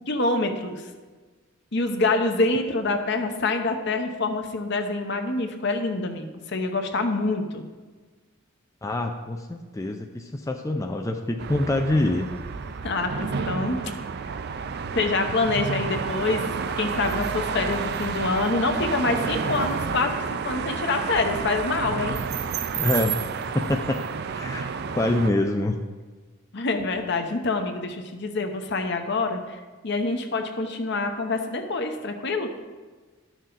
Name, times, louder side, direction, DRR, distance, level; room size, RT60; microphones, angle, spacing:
voice 1, 0.1-0.8 1.7-7.6 12.8-13.8 14.9-16.4 16.8-22.2 26.5-29.6 29.8-32.5, left 3 dB, 55° left, 5 dB, 0.9 m, -26 dB
voice 2, 8.8-12.3 22.8-23.2 23.5-24.0 24.3-25.8, left 1 dB, 15° left, 3 dB, 0.4 m, -25 dB
sound 1, 11.4-25.3, right 5 dB, 50° right, 0.4 m, -30 dB
12.5 x 6.3 x 3.9 m, 1.4 s
head